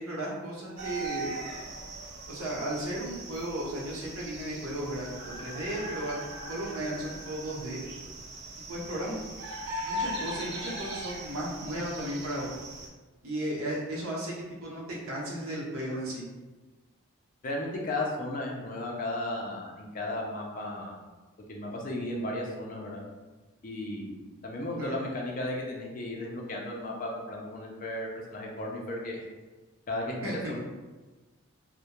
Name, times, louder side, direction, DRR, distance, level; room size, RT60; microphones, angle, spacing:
voice 1, 0.0-1.4 2.3-5.1 5.4-6.2 6.5-7.8 8.7-9.3 9.8-12.5 13.2-14.3 14.6-16.2 24.8-25.0 30.2-30.3, right 1 dB, 85° right, -5 dB, 0.8 m, -35 dB
sound 1, 0.8-12.9, right 1 dB, 50° right, 0.4 m, -39 dB
voice 2, 17.4-21.0 21.5-23.0 23.6-29.3 29.9-30.2 30.5-30.6, left 1 dB, 40° left, -1 dB, 0.4 m, -35 dB
2.2 x 2.1 x 2.9 m, 1.2 s
head